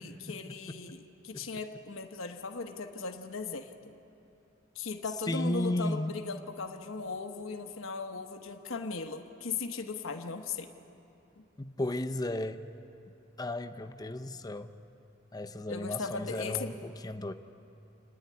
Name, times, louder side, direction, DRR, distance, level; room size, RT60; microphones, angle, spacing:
voice 1, 0.0-3.7 4.7-10.7 15.7-16.7, left 4 dB, 75° left, 5 dB, 1.1 m, -38 dB
voice 2, 5.3-6.2 11.6-12.7 13.4-14.7 15.3-17.3, left 1 dB, 20° left, 7 dB, 0.6 m, -34 dB
29.0 x 9.7 x 9.6 m, 2.8 s
head